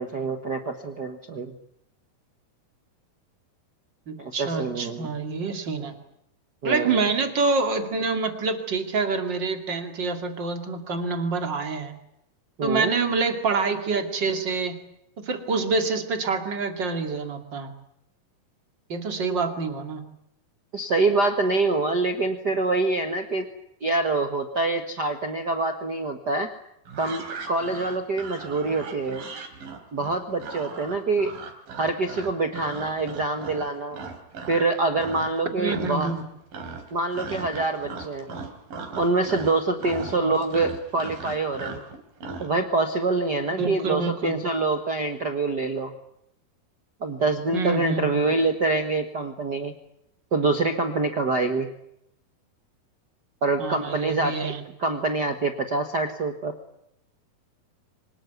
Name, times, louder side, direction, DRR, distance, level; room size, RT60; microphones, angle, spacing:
voice 1, 0.0-1.5 4.2-5.1 6.6-7.0 12.6-12.9 20.7-23.5 23.8-26.5 27.0-29.3 29.9-31.3 31.8-34.0 34.5-36.1 36.9-38.3 39.0-41.8 42.4-45.9 47.0-49.7 50.3-51.7 53.4-54.5 54.8-56.5, right 3 dB, 85° right, 7 dB, 0.9 m, -25 dB
voice 2, 4.1-6.0 6.6-11.9 12.6-14.8 15.2-17.7 18.9-20.0 35.6-36.2 40.1-40.3 43.6-44.4 47.5-48.2 53.6-54.6, right 4 dB, 35° right, 7 dB, 2.5 m, -26 dB
sound 1, 26.9-34.7 35.0-35.4 35.6-36.3 36.5-42.5, right 4 dB, 60° right, 4.7 m, -38 dB
25.0 x 20.0 x 9.4 m, 0.79 s
omnidirectional pair, 4.6 m